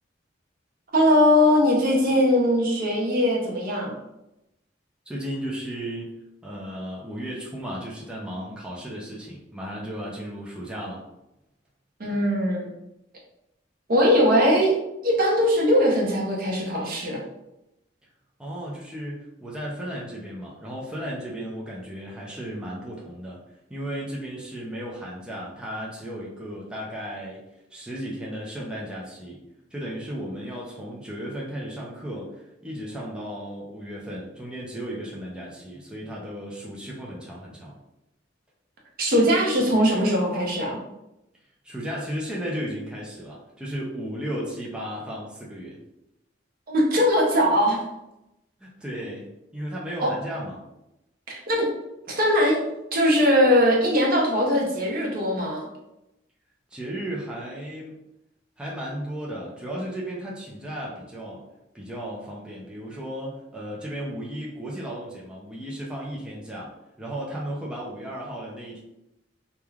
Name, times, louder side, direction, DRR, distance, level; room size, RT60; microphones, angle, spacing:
voice 1, 0.9-4.0 12.0-12.7 13.9-14.7 15.0-17.2 39.0-40.8 46.7-47.8 50.0-50.1 51.3-51.7 52.1-52.6 52.9-55.7, equal, 55° right, -1 dB, 0.6 m, -20 dB
voice 2, 5.1-6.1 6.4-11.0 18.4-23.4 23.7-27.4 27.7-29.4 29.7-37.8 41.6-45.8 48.6-49.3 49.5-50.6 56.7-58.0 58.6-61.4 61.7-66.7 67.0-68.8, equal, 5° right, -5 dB, 0.4 m, -35 dB
3.1 x 2.2 x 2.3 m, 0.89 s
head